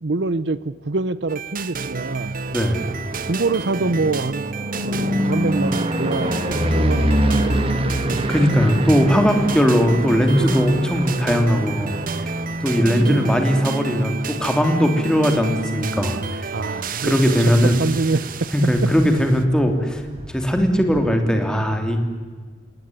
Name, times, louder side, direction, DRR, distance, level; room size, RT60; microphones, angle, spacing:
voice 1, 0.0-2.4 3.3-4.6 4.8-8.6 12.3-12.6 13.0-13.3 16.5-17.1 17.8-18.5, right 3 dB, 75° right, 17 dB, 0.8 m, -25 dB
sound 1, 1.3-19.4, right 4 dB, 50° right, 1.2 m, -30 dB
voice 2, 2.5-2.8 8.3-11.9 12.6-16.4 17.0-17.7 18.5-20.0 20.3-22.0, equal, 5° left, 4 dB, 2.9 m, -19 dB
sound 2, 2.5-16.5 16.9-17.4 17.6-17.7 18.0-18.1 18.3-21.1, equal, 30° right, 2.4 m, -27 dB
29.0 x 18.0 x 9.8 m, 1.5 s
head